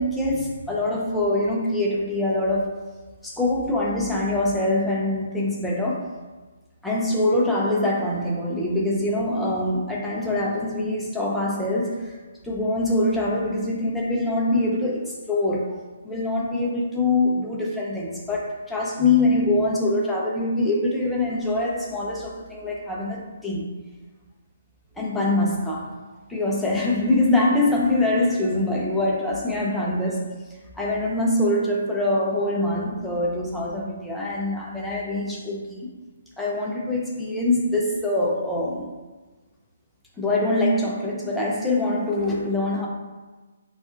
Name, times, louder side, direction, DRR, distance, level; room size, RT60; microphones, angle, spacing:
voice 1, 0.0-2.7 3.2-6.0 6.8-12.2 12.4-15.8 16.0-23.7 25.0-25.9 26.3-30.3 30.8-35.9 36.4-38.9 40.2-42.9, left 2 dB, 5° left, -4 dB, 0.5 m, -24 dB
3.5 x 2.4 x 2.4 m, 1.3 s
figure-of-eight pair, 140°, 0 cm